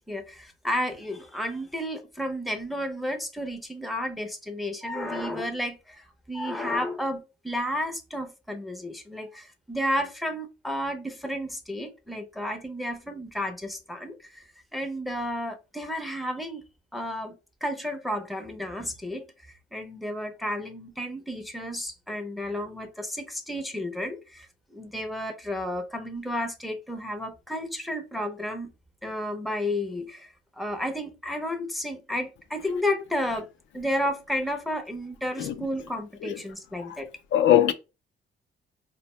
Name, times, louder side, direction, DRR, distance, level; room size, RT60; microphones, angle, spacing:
voice 1, 0.0-14.5 14.7-16.6 16.9-17.3 17.6-19.3 19.7-28.7 29.0-33.5 33.7-37.1, left 1 dB, ahead, 0.6 m, -32 dB
voice 2, 37.3-37.7, left 11 dB, 75° left, 0.5 m, -22 dB
3.9 x 2.1 x 3.0 m
cardioid pair, 90°, 20 cm